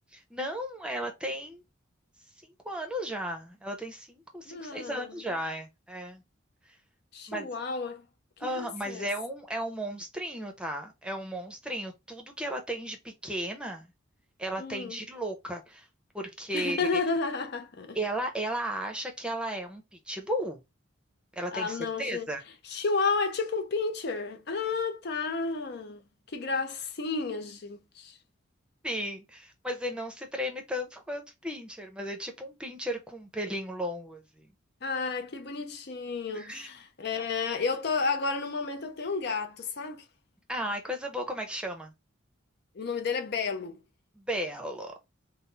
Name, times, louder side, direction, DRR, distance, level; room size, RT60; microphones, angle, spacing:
voice 1, 0.1-1.6 2.6-6.2 7.3-7.5 8.4-13.9 14.4-15.8 16.1-17.0 17.9-20.6 21.4-22.4 28.8-34.5 36.3-36.7 37.1-37.3 40.5-41.9 44.2-44.9, equal, 5° right, 0.7 m, -35 dB
voice 2, 4.5-5.1 7.1-8.0 8.5-9.1 14.6-15.0 16.5-18.0 21.5-22.3 22.6-26.0 26.3-28.2 34.8-40.0 42.7-43.8, left 4 dB, 55° left, 0.5 m, -31 dB
3.9 x 2.0 x 3.9 m
head